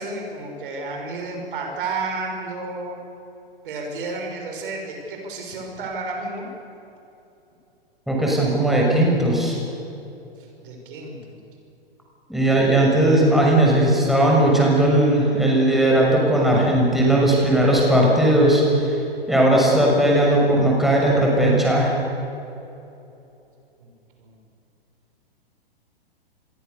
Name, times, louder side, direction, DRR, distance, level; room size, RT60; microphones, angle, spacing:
voice 1, 0.0-3.0 3.6-6.5 10.6-11.4 12.3-13.1 23.8-23.9 24.2-24.4, right 3 dB, 60° right, 2 dB, 6.6 m, -32 dB
voice 2, 8.1-9.5 12.3-18.9 19.3-21.9, right 1 dB, ahead, -3 dB, 6.5 m, -17 dB
27.0 x 23.0 x 6.9 m, 2.9 s
figure-of-eight pair, 110°, 30 cm